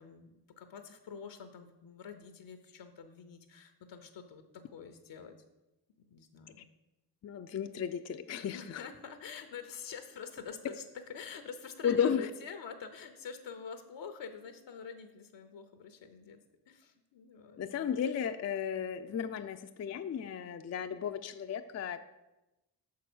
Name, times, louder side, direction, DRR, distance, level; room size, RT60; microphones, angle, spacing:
voice 1, 0.0-5.3 6.1-6.6 8.5-16.4 16.7-17.6, left 6 dB, 80° left, 8 dB, 0.8 m, -47 dB
voice 2, 7.2-8.8 11.8-12.3 17.6-22.0, left 8 dB, 40° left, 8 dB, 0.4 m, -34 dB
6.1 x 4.7 x 6.0 m, 0.99 s
cardioid pair, 70°, 44 cm